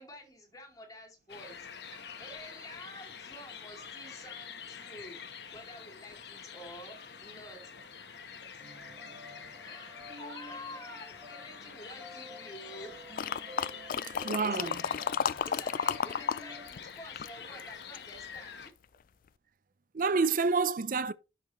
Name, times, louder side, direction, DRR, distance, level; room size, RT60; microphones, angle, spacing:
voice 1, 0.0-5.2 5.5-7.7 9.6-13.0 14.0-15.0 15.4-18.7, left 1 dB, 20° left, 2.6 m, -49 dB
sound 1, 1.3-18.7, left 7 dB, 65° left, 1.1 m, -47 dB
sound 2, 8.6-16.7, left 1 dB, 25° right, 3.1 m, -50 dB
sound 3, 13.2-16.4 16.7-18.1 18.7-18.8, left 7 dB, 50° left, 0.3 m, -32 dB
voice 2, 13.7-14.8 19.9-21.1, right 4 dB, 50° right, 0.5 m, -29 dB
11.0 x 5.8 x 3.0 m
head